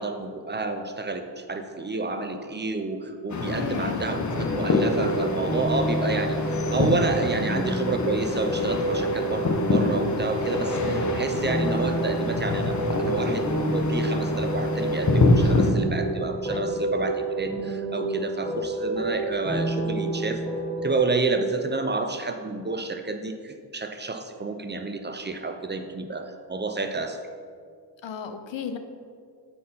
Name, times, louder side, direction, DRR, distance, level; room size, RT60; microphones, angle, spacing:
voice 1, 0.0-20.4 20.8-27.2, right 3 dB, 25° right, 6 dB, 0.5 m, -29 dB
sound 1, 3.3-15.7, left 3 dB, 40° left, 0.9 m, -26 dB
voice 2, 3.5-4.1 5.0-5.3 15.4-16.1 16.5-16.9 28.0-28.8, left 6 dB, 85° left, 8 dB, 0.8 m, -36 dB
sound 2, 4.3-21.0, right 2 dB, 15° left, 1.5 m, -29 dB
8.5 x 4.2 x 5.4 m, 2.2 s
wide cardioid pair, 105°, 43 cm